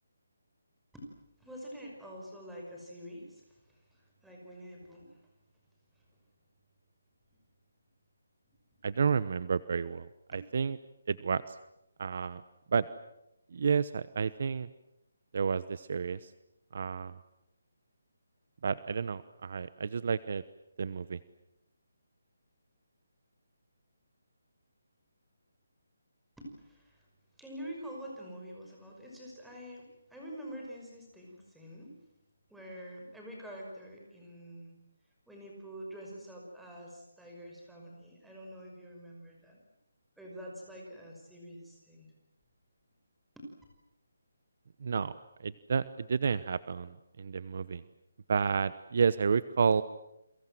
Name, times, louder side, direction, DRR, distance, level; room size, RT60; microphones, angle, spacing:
voice 1, 1.4-5.2 26.4-27.1 27.4-32.0 32.5-34.7 35.3-39.6 40.2-42.1 43.4-43.5, equal, ahead, -2 dB, 5.8 m, -46 dB
voice 2, 8.8-10.8 11.1-11.6 12.0-12.4 12.7-12.9 13.5-14.7 15.3-16.3 16.7-17.2 18.6-20.4 20.8-21.2 44.8-45.1 45.4-47.8 48.3-49.8, right 6 dB, 45° right, 16 dB, 1.0 m, -30 dB
29.5 x 23.5 x 7.8 m, 0.87 s
hypercardioid pair, 170°, 0 cm